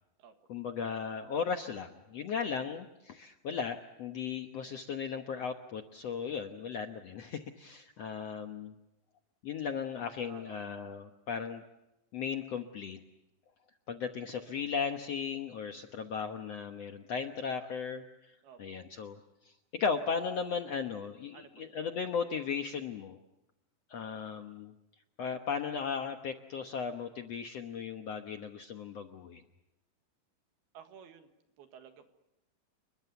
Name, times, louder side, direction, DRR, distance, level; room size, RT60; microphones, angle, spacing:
voice 1, 0.5-8.7 9.4-11.7 12.1-13.0 13.9-19.2 19.4-23.2 23.9-24.7 25.2-29.4, left 6 dB, 80° left, 6 dB, 1.4 m, -36 dB
voice 2, 10.3-10.6 18.4-18.6 21.3-21.8 30.7-31.3 31.6-32.1, right 7 dB, 75° right, 7 dB, 3.6 m, -53 dB
29.5 x 22.0 x 7.0 m, 0.92 s
omnidirectional pair, 4.7 m